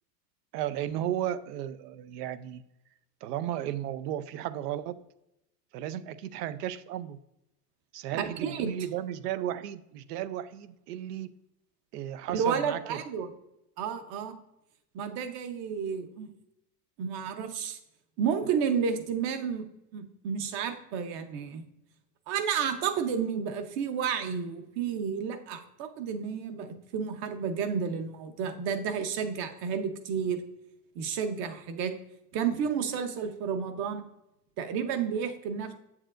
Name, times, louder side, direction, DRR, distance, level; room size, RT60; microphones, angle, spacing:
voice 1, 0.5-2.6 3.2-5.0 5.7-7.2 7.9-11.3 11.9-13.0, right 11 dB, 80° right, 15 dB, 0.6 m, -34 dB
voice 2, 8.1-8.7 12.3-13.3 13.8-14.3 14.9-16.3 17.0-17.8 18.2-19.7 19.9-21.6 22.3-30.4 30.9-31.9 32.3-34.0 34.6-35.7, right 7 dB, 50° right, 8 dB, 1.0 m, -31 dB
8.0 x 7.2 x 2.5 m, 0.86 s
supercardioid pair, 125°, 47 cm